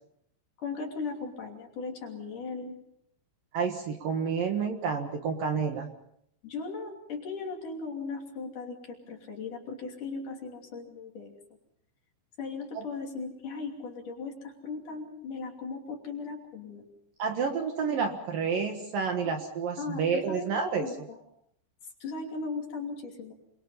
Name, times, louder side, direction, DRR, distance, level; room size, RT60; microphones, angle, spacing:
voice 1, 0.6-2.8 6.4-11.3 12.4-16.8 19.2-19.3 19.8-21.2 22.0-23.3, left 4 dB, 50° left, 2 dB, 4.1 m, -38 dB
voice 2, 3.5-5.9 12.7-12.8 17.2-20.9, right 5 dB, 60° right, 4 dB, 2.8 m, -29 dB
28.0 x 22.0 x 5.7 m, 0.71 s
omnidirectional pair, 5.3 m